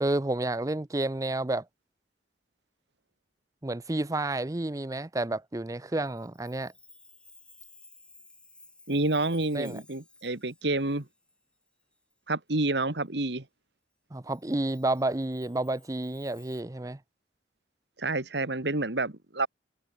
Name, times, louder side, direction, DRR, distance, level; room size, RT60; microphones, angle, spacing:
voice 1, 0.0-1.6 3.6-6.7 9.5-9.8 14.1-17.0, right 2 dB, 20° right, 0.6 m, -30 dB
Chime, 6.0-12.1 12.6-12.7 14.3-16.6, left 2 dB, 5° left, 6.5 m, -57 dB
voice 2, 8.9-11.1 12.3-13.5 18.0-19.5, right 2 dB, 70° right, 2.1 m, -29 dB
head